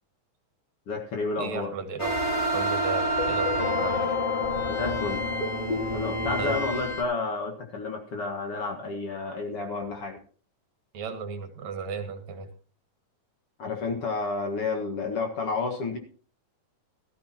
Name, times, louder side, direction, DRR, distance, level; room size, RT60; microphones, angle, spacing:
voice 1, 0.9-1.7 4.7-5.2 5.9-10.2 13.6-16.0, left 3 dB, 50° left, 3 dB, 2.3 m, -30 dB
voice 2, 1.4-2.1 2.5-4.1 6.4-6.6 10.9-12.5, right 5 dB, 65° right, 7 dB, 2.5 m, -34 dB
sound 1, 2.0-7.0, left 1 dB, 20° left, 1.4 m, -28 dB
Bowed string instrument, 3.2-7.1, right 3 dB, 40° right, 1.3 m, -41 dB
16.5 x 13.5 x 2.9 m, 0.41 s
omnidirectional pair, 3.7 m